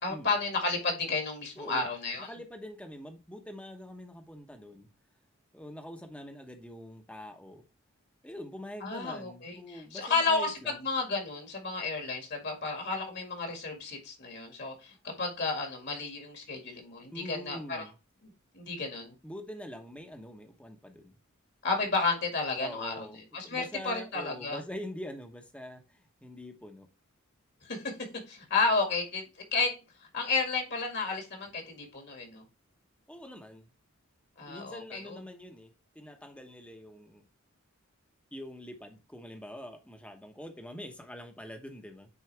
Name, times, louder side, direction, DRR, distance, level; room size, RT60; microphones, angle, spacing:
voice 1, 0.0-2.3 8.8-17.8 18.5-19.1 21.6-24.6 27.6-27.9 28.3-29.2 29.5-29.7 30.1-32.4 34.4-35.2, left 3 dB, 50° left, 1.9 m, -32 dB
voice 2, 2.3-4.9 5.5-7.6 8.2-10.8 17.1-17.9 19.2-21.2 22.6-26.9 33.1-33.7 34.5-37.2 38.3-42.1, left 1 dB, 5° left, 1.0 m, -44 dB
9.5 x 4.1 x 3.3 m
head